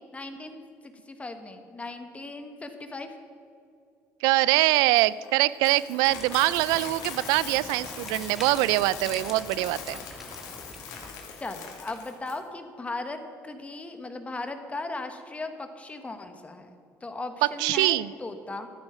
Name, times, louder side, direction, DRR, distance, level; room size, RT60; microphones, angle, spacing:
voice 1, 0.1-3.1 11.4-16.7 17.0-18.7, left 2 dB, 20° left, 7 dB, 1.3 m, -37 dB
voice 2, 4.2-10.0 17.6-18.1, right 17 dB, 90° right, 19 dB, 0.4 m, -23 dB
Coin (dropping), 4.9-12.4, left 6 dB, 90° left, 2.1 m, -41 dB
sound 1, 6.1-11.1, equal, 5° right, 1.4 m, -44 dB
13.0 x 9.8 x 5.9 m, 2.4 s
cardioid pair, 95°, 6 cm